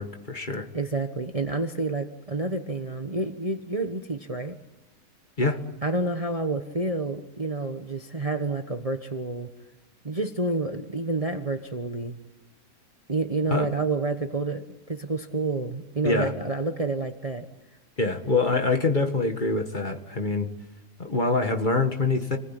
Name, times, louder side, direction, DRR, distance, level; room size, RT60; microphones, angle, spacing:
voice 1, 0.0-0.7 5.4-5.6 13.5-13.7 16.0-16.3 18.0-20.5 21.0-22.4, left 3 dB, 30° left, 4 dB, 1.9 m, -25 dB
voice 2, 0.7-4.6 5.8-9.5 10.0-12.2 13.1-17.5, right 3 dB, 25° right, 6 dB, 1.2 m, -29 dB
29.0 x 20.0 x 9.2 m, 1.0 s
omnidirectional pair, 1.6 m